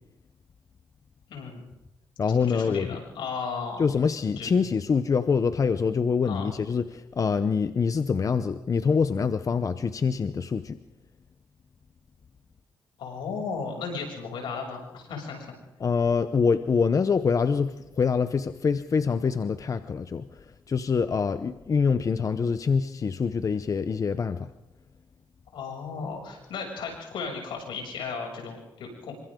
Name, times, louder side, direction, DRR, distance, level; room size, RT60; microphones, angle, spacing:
voice 1, 1.3-1.6 2.3-3.8 4.3-4.5 6.2-6.5 13.0-15.5 25.5-29.1, left 5 dB, 85° left, 1 dB, 7.3 m, -35 dB
voice 2, 2.2-3.0 3.8-10.8 15.8-20.4 20.7-24.5, left 5 dB, 45° left, 11 dB, 0.9 m, -25 dB
27.5 x 24.5 x 3.8 m, 0.91 s
cardioid pair, 80°, 8 cm